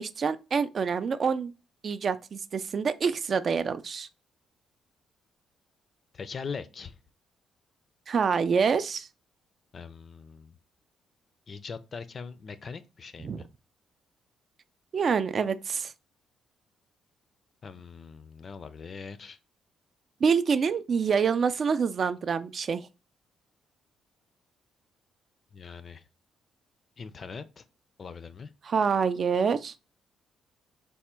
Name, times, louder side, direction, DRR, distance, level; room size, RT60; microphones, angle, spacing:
voice 1, 0.0-1.5 1.8-4.1 8.1-9.1 13.2-13.4 14.9-15.9 20.2-22.9 28.7-29.7, right 6 dB, 50° right, 0.3 m, -26 dB
voice 2, 6.1-7.0 9.7-10.6 11.5-13.5 17.6-19.4 25.5-26.0 27.0-27.6 28.0-28.5, left 5 dB, 45° left, 0.4 m, -41 dB
3.4 x 2.1 x 4.3 m
cardioid pair, 90°, 0 cm